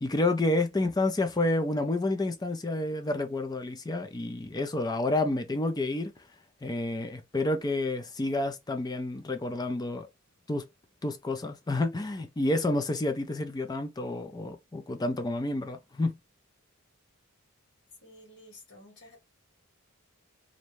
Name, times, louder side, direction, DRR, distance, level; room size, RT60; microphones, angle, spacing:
voice 1, 0.0-6.1 6.6-10.1 10.5-10.7 11.0-16.2, left 2 dB, 20° left, 0.4 m, -29 dB
voice 2, 18.0-19.2, left 1 dB, 55° left, 1.5 m, -52 dB
2.6 x 2.2 x 3.0 m
head